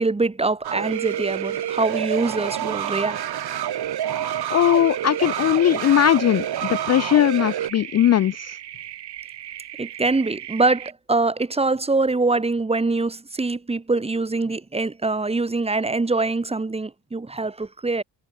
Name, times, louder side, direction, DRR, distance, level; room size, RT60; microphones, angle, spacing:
voice 1, 0.0-3.2 9.8-18.0, right 3 dB, 15° right, 2.0 m, -24 dB
sound 1, 0.6-7.7, right 11 dB, 65° right, 4.5 m, -28 dB
sound 2, 0.8-10.9, right 12 dB, 80° right, 5.4 m, -38 dB
voice 2, 4.5-8.6, left 11 dB, 40° left, 0.5 m, -19 dB
cardioid pair, 160°, 41 cm